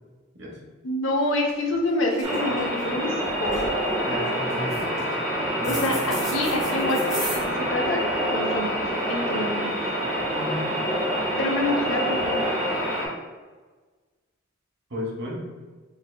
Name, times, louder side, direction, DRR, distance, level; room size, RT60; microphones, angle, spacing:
voice 1, 0.8-3.7 5.7-9.7 11.4-12.4, left 1 dB, 75° left, 0 dB, 0.7 m, -27 dB
sound 1, 1.1-1.2 1.5-1.8 2.0-2.8 3.2-3.8 4.5-5.1 5.6-7.4, right 1 dB, 5° right, 1.2 m, -35 dB
sound 2, 2.2-13.1, equal, 35° right, 1.0 m, -26 dB
voice 2, 4.0-5.1 5.6-5.9 10.3-10.6 14.9-15.5, equal, 60° right, -1 dB, 0.9 m, -33 dB
4.8 x 3.2 x 2.2 m, 1.3 s
head